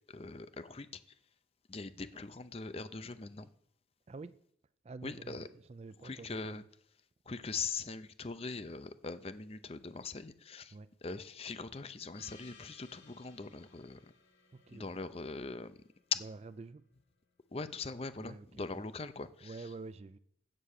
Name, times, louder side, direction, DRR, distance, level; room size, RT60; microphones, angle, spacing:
voice 1, 0.1-0.9 1.7-3.5 5.0-5.5 6.0-6.6 7.3-10.7 11.0-14.0 14.7-15.7 16.1-16.2 17.5-19.6, left 4 dB, 30° left, 0.6 m, -41 dB
voice 2, 4.1-4.4 4.8-6.7 10.7-10.9 14.5-14.9 16.2-16.8 18.2-18.7 19.4-20.2, right 3 dB, 35° right, 0.4 m, -48 dB
Gong, 12.1-16.9, left 5 dB, 75° left, 2.2 m, -62 dB
8.0 x 7.6 x 6.5 m
head